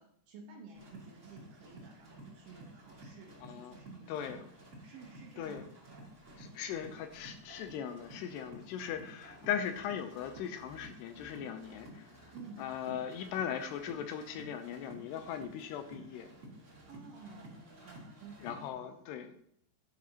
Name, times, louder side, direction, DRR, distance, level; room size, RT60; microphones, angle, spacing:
voice 1, 0.0-4.4 4.8-6.0 12.3-12.7 16.9-18.6, right 4 dB, 70° right, 2.3 m, -53 dB
sound 1, 0.7-18.7, right 1 dB, 25° right, 2.0 m, -53 dB
voice 2, 3.4-3.8 4.1-4.5 5.4-5.7 6.4-12.3 12.6-16.3 18.4-19.4, left 8 dB, 85° left, 2.7 m, -39 dB
11.0 x 10.5 x 2.9 m
omnidirectional pair, 5.0 m